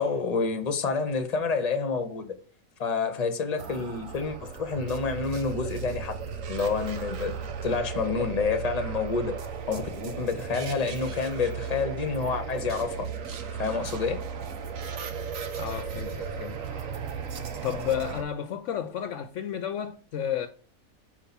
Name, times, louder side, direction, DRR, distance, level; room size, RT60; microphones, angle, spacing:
voice 1, 0.0-2.3 2.8-6.2 6.5-9.3 9.7-13.1 13.6-14.2, left 4 dB, 30° left, 0.9 m, -28 dB
sound 1, 3.6-18.2, right 6 dB, 70° right, 1.3 m, -35 dB
voice 2, 15.6-16.6 17.6-20.5, left 9 dB, 70° left, 0.9 m, -32 dB
5.6 x 4.5 x 5.9 m
omnidirectional pair, 1.5 m